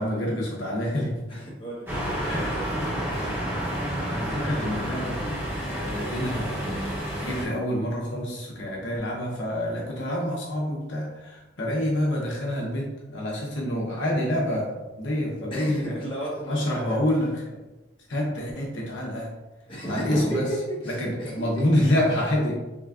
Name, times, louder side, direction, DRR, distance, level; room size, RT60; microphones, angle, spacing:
voice 1, 0.0-1.2 2.3-2.5 2.8-3.5 4.1-5.4 5.6-6.8 7.2-15.9 16.5-17.3 18.1-19.3 19.8-20.4 21.0-22.6, left 1 dB, 80° left, -3 dB, 0.9 m, -27 dB
voice 2, 1.3-2.7 15.5-17.0 19.7-20.4 20.8-22.1, equal, 30° left, -6 dB, 1.2 m, -34 dB
sound 1, 1.9-7.4, equal, 15° right, 0.9 m, -30 dB
3.6 x 3.5 x 2.4 m, 1.1 s
head